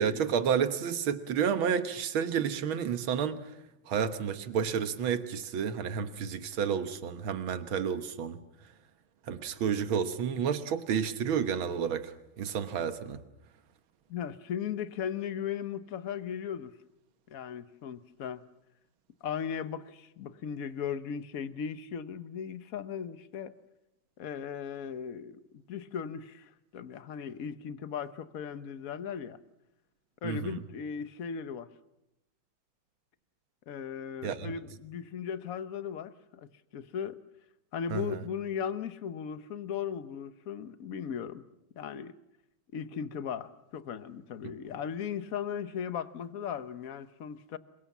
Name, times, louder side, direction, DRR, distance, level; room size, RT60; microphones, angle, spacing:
voice 1, 0.0-3.5 3.9-8.4 9.3-13.2 30.2-30.6 34.2-34.5 37.9-38.2, right 7 dB, 85° right, 2.1 m, -30 dB
voice 2, 14.1-16.7 17.3-18.4 19.2-23.5 24.2-29.4 30.2-31.7 33.7-37.2 37.7-41.4 41.8-42.1 42.7-47.6, left 7 dB, 50° left, 1.3 m, -37 dB
27.5 x 23.5 x 7.3 m
omnidirectional pair, 2.2 m